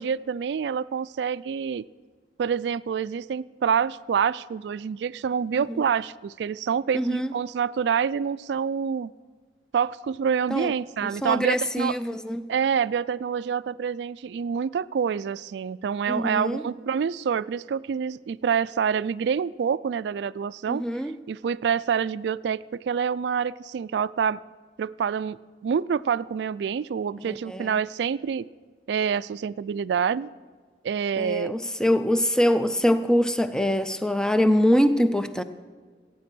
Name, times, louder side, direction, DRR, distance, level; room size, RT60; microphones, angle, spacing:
voice 1, 0.0-1.8 2.4-9.1 9.7-12.0 12.5-20.8 21.3-24.4 24.8-25.4 25.6-28.5 28.9-30.3 30.8-31.6, right 7 dB, 70° right, 0.3 m, -27 dB
voice 2, 6.9-7.3 10.5-10.7 11.2-12.5 16.1-16.6 20.7-21.2 27.3-27.7 31.2-35.4, equal, 5° left, 0.4 m, -24 dB
15.0 x 9.3 x 6.1 m
head